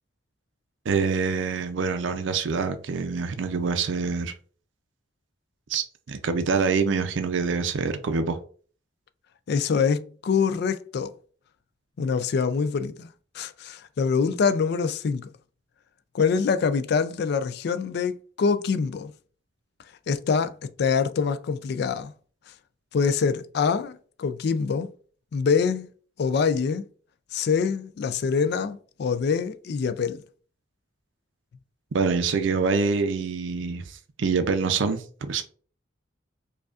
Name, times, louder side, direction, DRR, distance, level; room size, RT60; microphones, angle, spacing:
voice 1, 0.9-4.3 5.7-8.4 31.9-35.4, right 5 dB, 80° right, 0.5 m, -25 dB
voice 2, 9.5-11.1 12.0-13.1 13.3-15.3 16.1-19.1 20.1-22.1 22.9-24.9 25.3-25.9 26.2-26.8 27.3-30.2, left 5 dB, 60° left, 0.3 m, -25 dB
4.9 x 2.3 x 2.4 m
head